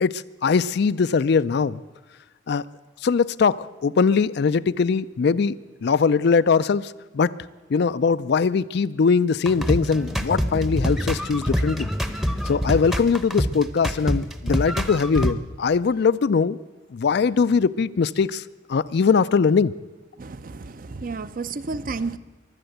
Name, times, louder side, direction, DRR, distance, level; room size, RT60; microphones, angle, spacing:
voice 1, 0.0-1.8 2.5-2.6 3.0-5.5 5.8-7.3 7.7-11.9 12.5-16.6 16.9-18.4 18.7-19.7, left 5 dB, 60° left, 16 dB, 0.4 m, -21 dB
sound 1, 9.4-15.3, equal, ahead, 0.8 m, -25 dB
voice 2, 20.2-22.2, right 4 dB, 45° right, 13 dB, 0.6 m, -31 dB
22.5 x 8.0 x 7.9 m, 1.2 s
head